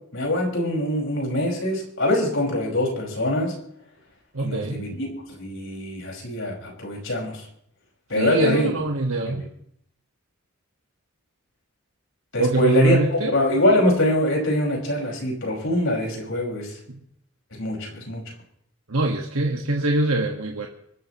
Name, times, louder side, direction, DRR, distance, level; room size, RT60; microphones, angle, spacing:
voice 1, 0.1-3.6 4.4-5.1 5.4-7.4 8.1-8.7 9.3-9.4 12.3-16.8 17.5-18.2, left 1 dB, 65° left, -1 dB, 5.5 m, -23 dB
voice 2, 4.3-4.8 8.1-9.5 12.4-13.3 18.9-20.7, right 2 dB, 85° right, 0 dB, 1.7 m, -23 dB
25.5 x 13.5 x 3.1 m, 0.69 s
head